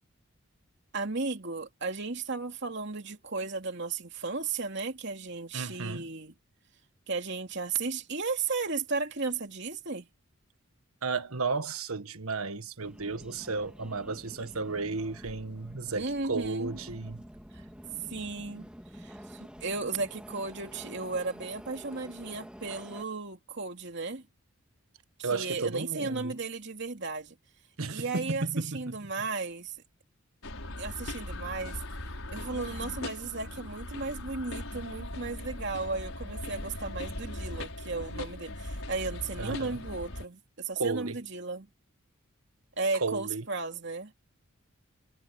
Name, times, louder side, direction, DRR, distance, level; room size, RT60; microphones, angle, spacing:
voice 1, 0.9-6.3 7.1-10.1 15.9-16.8 17.5-17.6 18.1-18.7 18.9-24.2 25.2-27.3 27.9-29.7 30.8-31.8 32.3-41.7 42.8-44.1, right 4 dB, 55° right, 2.9 m, -35 dB
voice 2, 5.5-6.1 11.0-17.2 25.2-26.3 27.8-29.1 39.4-39.8 40.7-41.2 43.0-43.4, right 3 dB, 90° right, 1.6 m, -33 dB
Subway metro underground, 12.8-23.0, equal, 5° right, 2.8 m, -48 dB
sound 1, 30.4-40.3, left 1 dB, 75° left, 5.6 m, -39 dB
head